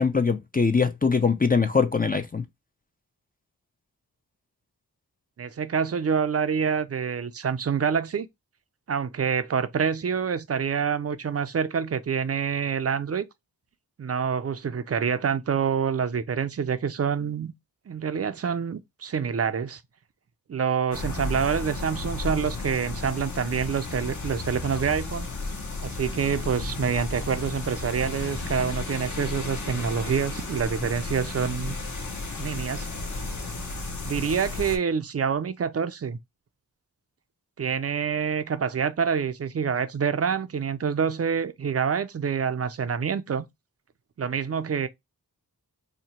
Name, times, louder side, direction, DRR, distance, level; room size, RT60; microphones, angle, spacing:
voice 1, 0.0-2.4, left 5 dB, 25° left, 0.4 m, -22 dB
voice 2, 5.4-8.3 8.9-13.3 14.0-17.5 17.9-19.8 20.5-25.3 25.8-31.8 32.4-32.9 34.0-36.2 37.6-43.5 44.2-44.9, right 6 dB, 40° right, 0.4 m, -27 dB
sound 1, 20.9-34.8, left 2 dB, 50° left, 0.8 m, -33 dB
2.8 x 2.2 x 4.1 m
wide cardioid pair, 60°, 38 cm